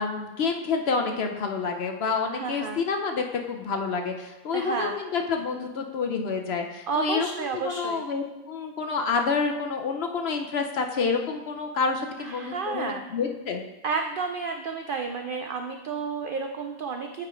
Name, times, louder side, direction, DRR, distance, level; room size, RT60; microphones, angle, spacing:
voice 1, 0.0-13.6, left 5 dB, 55° left, 4 dB, 0.8 m, -28 dB
voice 2, 2.3-2.8 4.5-5.0 6.9-8.1 12.2-13.1 13.8-17.3, right 5 dB, 90° right, 5 dB, 0.4 m, -31 dB
8.7 x 3.5 x 5.0 m, 1.1 s
omnidirectional pair, 1.5 m